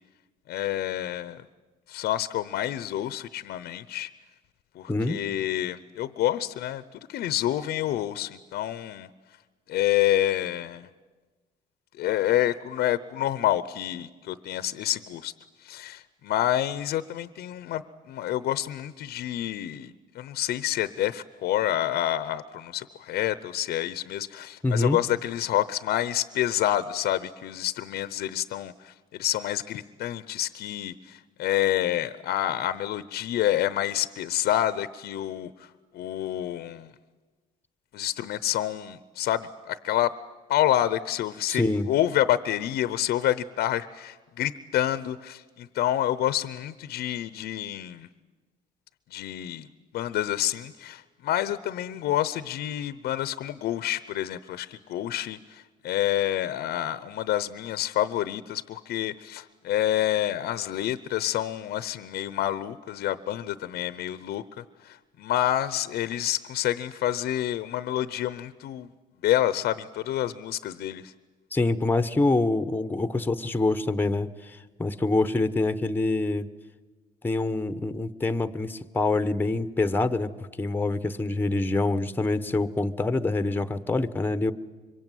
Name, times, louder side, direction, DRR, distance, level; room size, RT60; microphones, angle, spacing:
voice 1, 0.5-1.4 1.9-4.1 4.7-6.8 7.1-9.1 9.7-10.9 12.0-15.3 15.6-35.7 35.9-36.9 37.9-40.1 40.5-48.1 49.1-49.7 49.9-68.9 69.2-71.1, left 12 dB, 70° left, 15 dB, 0.8 m, -28 dB
voice 2, 4.9-5.2 24.6-25.0 41.5-41.9 71.5-76.5 77.2-80.3 80.6-84.5, left 2 dB, 10° left, 12 dB, 1.0 m, -25 dB
25.5 x 23.5 x 9.2 m, 1.3 s
cardioid pair, 110°, 17 cm